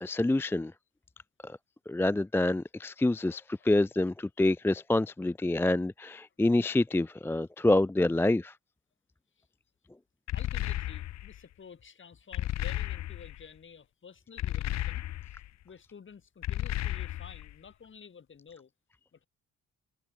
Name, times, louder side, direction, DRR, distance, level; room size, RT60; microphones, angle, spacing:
voice 1, 0.0-0.7 1.4-1.6 1.9-8.5, left 2 dB, 10° left, 0.4 m, -27 dB
sound 1, 10.3-11.4 12.3-13.4 14.4-15.5 16.4-17.5, left 14 dB, 60° left, 0.6 m, -33 dB
voice 2, 10.3-18.7 19.1-19.3, left 6 dB, 40° left, 3.2 m, -51 dB
cardioid pair, 90°, 30 cm